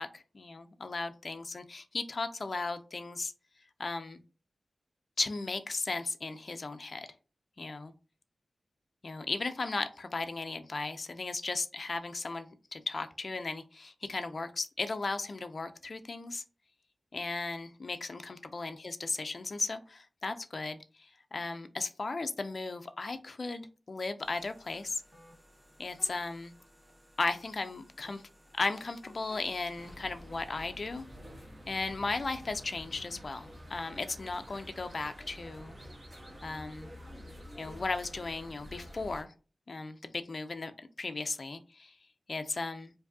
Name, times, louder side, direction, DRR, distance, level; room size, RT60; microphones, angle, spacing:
voice 1, 0.0-3.3 3.8-4.2 5.2-7.1 7.6-7.9 9.0-16.4 17.1-20.8 21.3-25.0 25.8-26.5 27.2-28.2 28.5-31.0 31.7-35.7 36.4-36.9 37.6-39.3 39.7-40.7 41.0-41.9 42.3-42.9, left 3 dB, 45° left, 8 dB, 0.4 m, -36 dB
sound 1, 24.2-29.9, equal, 5° right, 1.5 m, -58 dB
sound 2, 29.8-39.2, equal, 25° right, 1.0 m, -49 dB
4.6 x 2.6 x 2.7 m, 0.35 s
wide cardioid pair, 125°, 0 cm